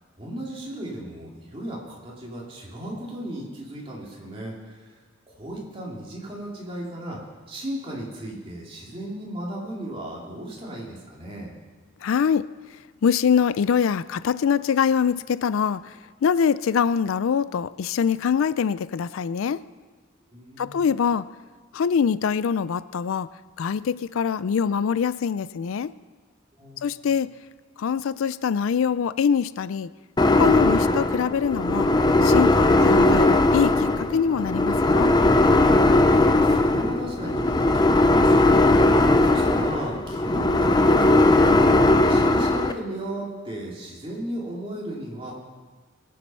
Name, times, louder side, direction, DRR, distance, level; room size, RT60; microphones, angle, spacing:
voice 1, 0.2-4.9 5.3-7.2 7.5-11.5 20.3-20.9 26.6-27.0 36.1-41.7 42.0-45.3, right 1 dB, 25° right, -3 dB, 2.7 m, -35 dB
voice 2, 12.0-12.5 13.0-19.6 20.6-21.3 21.7-23.3 23.6-25.9 26.8-27.3 27.8-29.9 30.3-31.9 32.2-35.1, left 7 dB, 80° left, 17 dB, 0.4 m, -24 dB
sound 1, 30.2-42.7, left 2 dB, 20° left, 0.5 m, -19 dB
21.0 x 7.5 x 5.5 m, 1.4 s
head